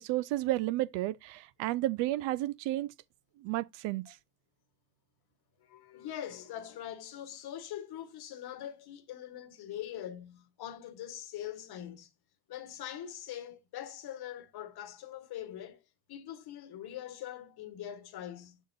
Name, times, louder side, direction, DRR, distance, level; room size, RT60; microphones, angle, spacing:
voice 1, 0.0-2.9 3.4-4.2, right 16 dB, 65° right, 0.6 m, -32 dB
voice 2, 5.6-12.1 12.5-18.6, left 11 dB, 55° left, 1.3 m, -43 dB
6.8 x 6.4 x 2.6 m
supercardioid pair, 95°, 47 cm